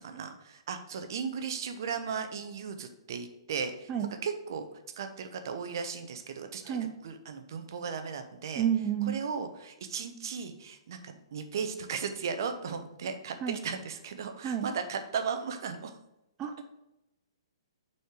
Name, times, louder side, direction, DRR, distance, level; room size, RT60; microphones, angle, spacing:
voice 1, 0.0-3.9 4.2-4.6 5.0-8.7 9.1-15.9, right 6 dB, 55° right, 7 dB, 0.9 m, -36 dB
voice 2, 8.6-9.1 13.4-13.6 14.4-14.7 16.4-16.5, right 9 dB, 20° right, 4 dB, 0.5 m, -30 dB
6.4 x 4.3 x 4.9 m, 0.88 s
figure-of-eight pair, 120°, 3 cm